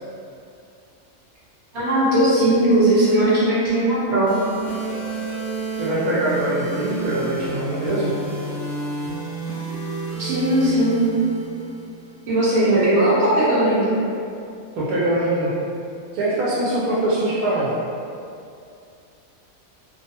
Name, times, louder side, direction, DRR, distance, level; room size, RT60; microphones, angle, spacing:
voice 1, 1.7-4.4 10.2-11.0 12.3-13.9, right 1 dB, 55° right, -9 dB, 1.1 m, -18 dB
sound 1, 4.3-12.3, right 4 dB, 65° left, 0.9 m, -30 dB
voice 2, 5.7-8.1 12.7-12.9 14.8-15.5 16.1-17.7, right 1 dB, 80° right, -8 dB, 1.0 m, -23 dB
2.6 x 2.3 x 2.7 m, 2.5 s
omnidirectional pair, 1.6 m